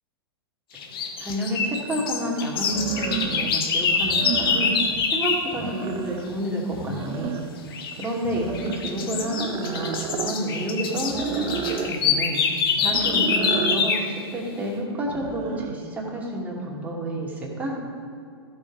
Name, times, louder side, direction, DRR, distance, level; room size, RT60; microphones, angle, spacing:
sound 1, 0.8-5.5 7.7-8.1 8.5-14.1, left 5 dB, 60° left, 1.2 m, -25 dB
voice 1, 1.2-4.7 5.1-7.4 8.0-12.4 12.8-17.8, right 1 dB, 10° right, -4 dB, 2.4 m, -29 dB
sound 2, 1.3-1.4 2.6-3.6 4.0-5.1 5.4-6.4 6.7-7.7 8.2-10.4 11.1-11.9 12.8-13.8 15.0-15.7, right 8 dB, 30° right, 0.6 m, -32 dB
14.5 x 5.4 x 4.9 m, 2.3 s
figure-of-eight pair, 105°, 14 cm